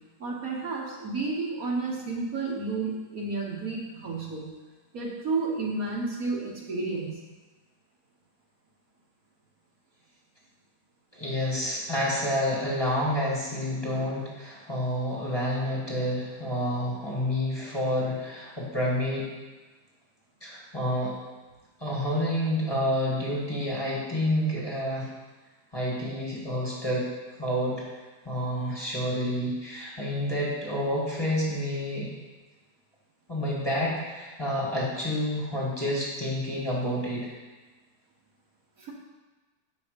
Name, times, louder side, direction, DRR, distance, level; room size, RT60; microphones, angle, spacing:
voice 1, 0.2-4.5 4.9-7.2 38.8-38.9, right 3 dB, 60° right, -3 dB, 1.6 m, -31 dB
voice 2, 11.1-19.3 20.4-21.1 21.8-25.1 25.7-27.1 27.4-27.8 28.3-32.1 33.3-37.3, equal, 15° left, -5 dB, 1.7 m, -29 dB
7.3 x 5.5 x 5.1 m, 1.2 s
omnidirectional pair, 1.8 m